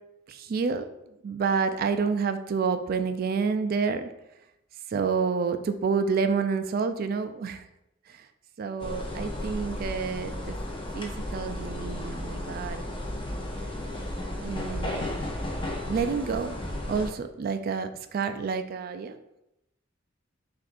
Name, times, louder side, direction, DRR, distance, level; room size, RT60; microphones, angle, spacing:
voice 1, 0.3-0.9 1.2-4.1 4.9-7.6 8.6-10.6 10.9-12.8 14.4-15.1 15.9-16.6 16.9-19.1, right 5 dB, 50° right, 9 dB, 0.3 m, -28 dB
sound 1, 8.8-17.1, left 1 dB, 25° left, 0.7 m, -34 dB
6.1 x 2.5 x 2.5 m, 0.86 s
head